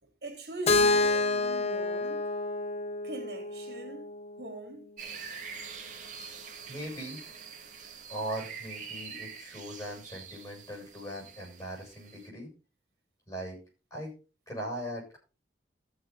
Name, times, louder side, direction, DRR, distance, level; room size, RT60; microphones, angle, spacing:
voice 1, 0.0-2.2 3.0-4.1 4.4-4.9, right 2 dB, 65° right, 3.8 m, -42 dB
Keyboard (musical), 0.7-4.6, left 3 dB, 35° left, 0.9 m, -28 dB
sound 1, 5.0-12.3, right 6 dB, 45° right, 2.3 m, -45 dB
voice 2, 6.7-7.2 8.1-12.5 13.3-13.6 13.9-14.1 14.5-15.2, right 1 dB, 20° left, 7.6 m, -39 dB
14.5 x 7.0 x 4.0 m
head